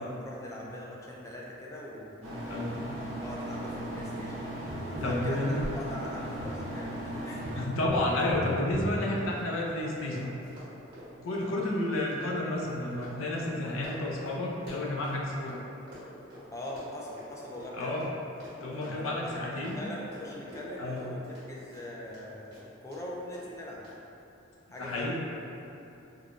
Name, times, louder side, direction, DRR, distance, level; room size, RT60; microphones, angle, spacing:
voice 1, 0.0-2.1 3.2-4.4 4.8-7.5 16.5-18.0 18.8-23.8 24.7-25.1, left 1 dB, 15° left, -4 dB, 0.3 m, -41 dB
sound 1, 2.2-7.7, right 1 dB, 75° right, 0.6 m, -37 dB
voice 2, 2.5-2.8 5.0-5.6 7.6-10.3 11.2-15.6 17.7-18.1 18.6-19.8 20.8-21.0 24.8-25.1, left 1 dB, 85° left, -2 dB, 0.5 m, -31 dB
Tap, 4.7-10.0 12.6-12.7, equal, 35° right, 0.7 m, -39 dB
Run, 7.3-7.4 7.6-7.8 8.1-15.6 15.9-22.2 22.5-23.0 23.3-23.4 23.8-23.9, equal, 50° right, 1.2 m, -48 dB
3.6 x 2.2 x 2.4 m, 2.8 s
head